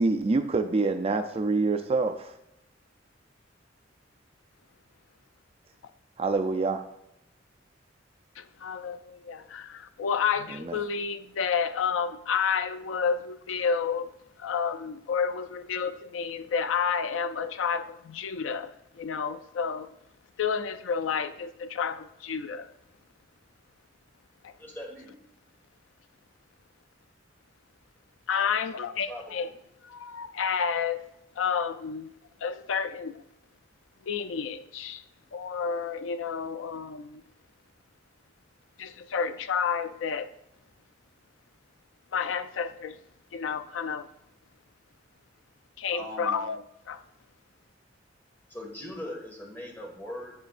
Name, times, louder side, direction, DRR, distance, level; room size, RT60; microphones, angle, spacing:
voice 1, 0.0-2.3 6.2-6.8 10.6-10.8, right 3 dB, 30° right, 0.4 m, -26 dB
voice 2, 8.4-14.1 14.4-19.9 20.4-22.7 24.4-24.5 28.3-29.5 29.8-31.1 31.4-32.1 32.4-33.2 34.0-35.0 35.3-37.2 38.8-40.3 42.1-43.0 43.3-44.1 45.8-47.0, left 6 dB, 80° left, 0.4 m, -30 dB
voice 3, 24.6-25.2 29.1-29.2 45.9-46.4 48.5-50.3, left 1 dB, 10° left, 1.8 m, -40 dB
10.5 x 8.0 x 2.5 m
head